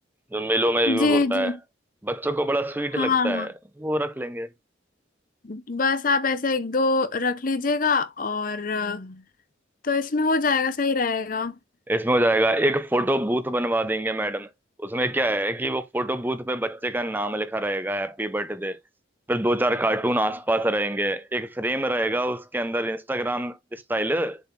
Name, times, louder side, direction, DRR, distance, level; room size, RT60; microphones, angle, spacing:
voice 1, 0.3-1.5 2.0-3.5 3.8-4.5 11.9-14.5 14.8-18.8 19.3-24.4, right 1 dB, 10° right, 0.6 m, -25 dB
voice 2, 0.9-1.6 3.0-3.5 5.4-9.2 9.8-11.5, left 4 dB, 45° left, 0.7 m, -24 dB
6.9 x 3.9 x 4.4 m
head